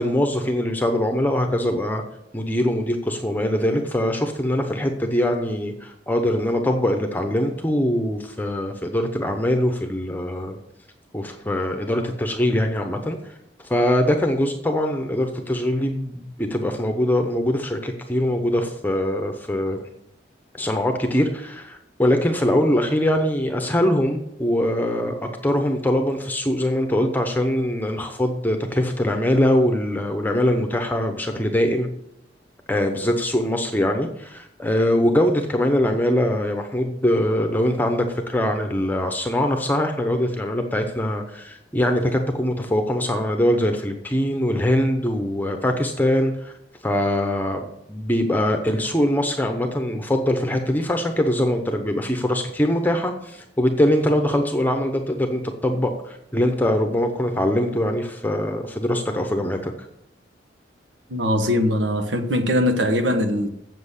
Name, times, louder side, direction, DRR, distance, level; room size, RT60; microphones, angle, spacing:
voice 1, 0.0-2.0 2.3-10.6 11.1-13.3 13.6-19.8 20.5-31.9 32.7-46.5 46.8-59.7, left 1 dB, 10° left, 0.8 m, -22 dB
voice 2, 61.1-63.5, left 1 dB, 85° right, 1.2 m, -21 dB
7.7 x 7.4 x 8.2 m
head